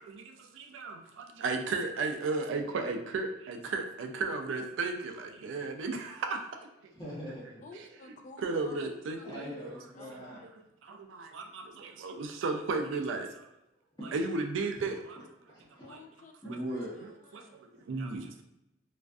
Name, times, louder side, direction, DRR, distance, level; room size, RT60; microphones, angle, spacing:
voice 1, 0.1-6.9 7.7-7.9 8.4-9.8 10.1-10.5 10.8-13.5 14.0-15.2 15.9-16.0 16.5-16.6 17.3-18.4, right 3 dB, 70° right, 5 dB, 0.3 m, -35 dB
voice 2, 6.9-7.6 9.2-10.5 14.0-14.1 15.5-15.9 16.4-17.0 17.7-17.8, equal, 20° left, -10 dB, 0.8 m, -41 dB
voice 3, 7.6-8.9 9.2-9.6 9.9-10.5 15.8-16.3 16.9-17.5, left 3 dB, 40° left, 4 dB, 0.3 m, -51 dB
2.4 x 2.3 x 2.3 m, 0.84 s
head